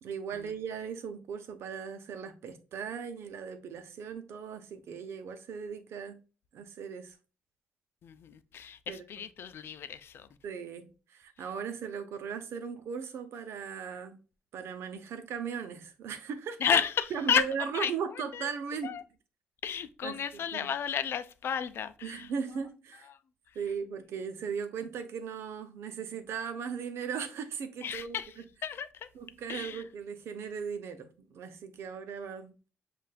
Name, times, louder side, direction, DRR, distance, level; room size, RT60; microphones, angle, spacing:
voice 1, 0.0-6.2 6.5-7.2 8.9-9.0 10.4-14.2 14.5-16.8 17.1-19.0 20.0-20.7 22.0-23.1 23.5-28.2 29.1-32.7, right 6 dB, 80° right, 0.8 m, -38 dB
voice 2, 8.0-10.3 16.6-17.5 17.7-17.9 18.3-18.5 18.8-19.0 19.6-22.3 27.8-28.3 28.6-29.1 29.5-29.8, left 8 dB, 65° left, 0.5 m, -32 dB
7.4 x 2.5 x 2.4 m
cardioid pair, 105°, 4 cm